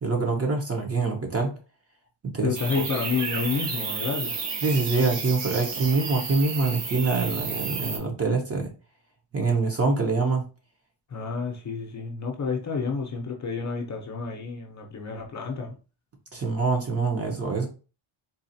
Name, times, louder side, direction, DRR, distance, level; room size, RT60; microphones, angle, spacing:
voice 1, 0.0-1.5 2.2-2.5 4.6-8.7 9.3-10.4 16.3-17.7, right 3 dB, 30° right, 0.9 m, -25 dB
voice 2, 2.4-4.4 11.1-15.7, left 5 dB, 35° left, 0.7 m, -30 dB
sound 1, 2.5-8.0, right 5 dB, 55° right, 0.9 m, -32 dB
4.0 x 2.4 x 2.7 m
cardioid pair, 110°, 49 cm